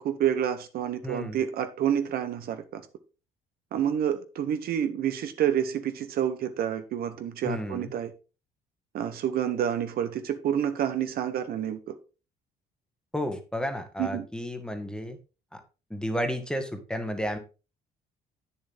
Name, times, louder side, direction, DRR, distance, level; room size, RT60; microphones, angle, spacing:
voice 1, 0.0-2.8 3.7-8.1 8.9-11.9 14.0-14.3, right 9 dB, 65° right, 10 dB, 1.0 m, -28 dB
voice 2, 1.0-1.4 7.4-7.9 13.1-15.2 15.5-15.6 15.9-17.4, equal, 5° left, 7 dB, 1.5 m, -32 dB
8.6 x 7.0 x 3.6 m, 0.33 s
cardioid pair, 110°, 17 cm